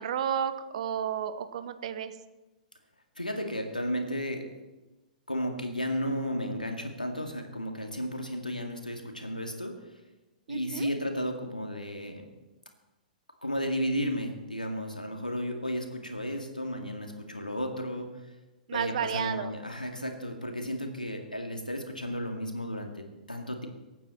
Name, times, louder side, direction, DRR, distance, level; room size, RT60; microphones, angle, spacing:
voice 1, 0.0-2.2 10.5-10.9 18.7-19.5, right 8 dB, 55° right, 11 dB, 1.0 m, -32 dB
voice 2, 3.2-4.5 5.3-9.7 10.5-12.2 13.4-18.3 18.7-23.7, equal, 90° left, 3 dB, 2.2 m, -33 dB
24.0 x 9.2 x 4.4 m, 1.1 s
figure-of-eight pair, 105°, 4 cm